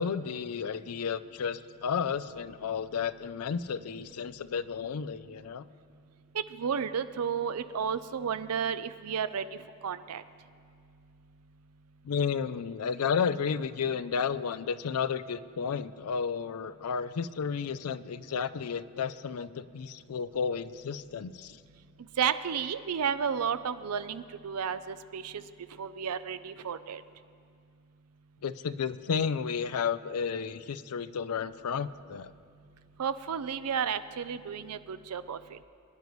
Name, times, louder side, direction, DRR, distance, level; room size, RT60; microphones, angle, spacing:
voice 1, 0.0-5.6 12.0-21.6 28.4-32.3, left 6 dB, 75° left, 15 dB, 0.4 m, -32 dB
voice 2, 6.3-9.4 9.8-10.2 22.2-25.4 25.8-27.0 33.0-35.6, right 7 dB, 80° right, 13 dB, 0.5 m, -32 dB
23.0 x 10.5 x 3.1 m, 2.2 s
head